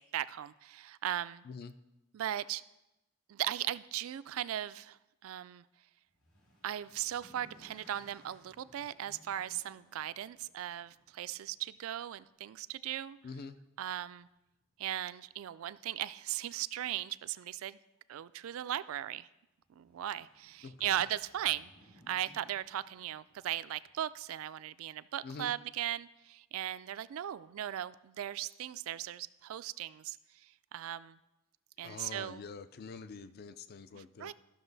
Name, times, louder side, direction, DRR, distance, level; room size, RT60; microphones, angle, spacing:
voice 1, 0.0-1.4 2.1-2.6 3.3-5.6 6.6-13.2 13.8-14.3 14.8-17.8 18.1-19.3 19.8-21.7 22.1-31.2 31.8-32.4 33.9-34.3, right 12 dB, 80° right, 16 dB, 0.3 m, -38 dB
sound 1, 6.1-12.3 13.3-13.7 14.0-14.1 14.5-14.6 19.6-24.0, equal, 85° left, 2.3 m, -63 dB
voice 2, 13.2-13.6 20.6-21.1 25.2-25.5 31.8-34.3, left 4 dB, 50° left, 13 dB, 0.4 m, -46 dB
13.0 x 6.2 x 4.0 m, 0.95 s
head